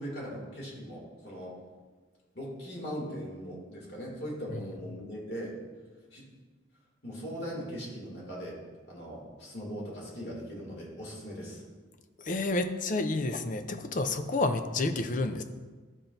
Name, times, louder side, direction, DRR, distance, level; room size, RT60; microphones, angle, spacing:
voice 1, 0.0-1.5 2.3-5.5 6.1-6.2 7.0-8.5 8.9-11.6, equal, 55° left, -4 dB, 2.6 m, -39 dB
voice 2, 12.2-15.4, left 2 dB, 40° left, 8 dB, 0.5 m, -30 dB
13.0 x 5.7 x 2.6 m, 1.4 s
head